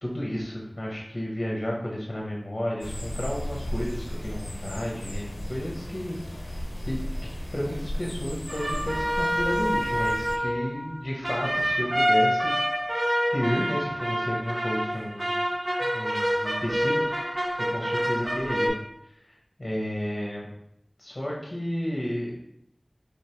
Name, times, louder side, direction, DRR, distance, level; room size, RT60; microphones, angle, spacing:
voice 1, 0.0-6.2 6.8-7.0 7.5-12.5 13.3-15.3 15.8-17.0 17.7-18.7 19.6-20.5 21.0-22.4, equal, 50° left, -3 dB, 1.0 m, -32 dB
sound 1, 2.8-10.4, equal, 75° left, 0.6 m, -35 dB
sound 2, 8.5-18.7, equal, 45° right, 0.7 m, -27 dB
3.5 x 3.3 x 4.4 m, 0.75 s
wide cardioid pair, 40°, 0 cm